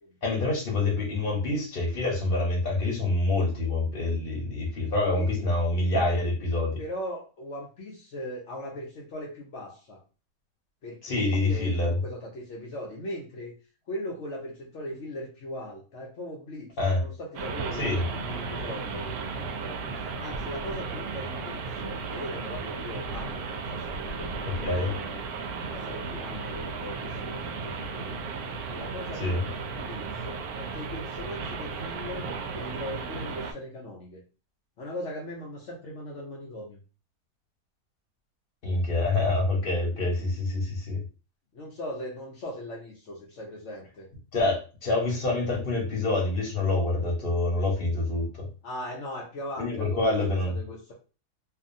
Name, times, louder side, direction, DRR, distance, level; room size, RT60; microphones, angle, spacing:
voice 1, 0.2-6.8 11.0-11.9 16.8-17.0 17.8-18.0 24.4-24.9 29.2-29.5 38.6-41.0 44.3-48.5 49.6-50.5, left 2 dB, 40° left, -2 dB, 1.1 m, -26 dB
voice 2, 6.8-10.0 10.8-13.5 13.9-19.8 20.2-25.3 25.7-28.2 28.7-34.2 34.8-36.8 41.5-44.1 48.6-50.2 50.4-50.9, left 1 dB, 60° left, -1 dB, 0.8 m, -39 dB
sound 1, 17.4-33.5, right 4 dB, 75° right, 1.0 m, -35 dB
2.7 x 2.6 x 2.5 m, 0.34 s
omnidirectional pair, 1.7 m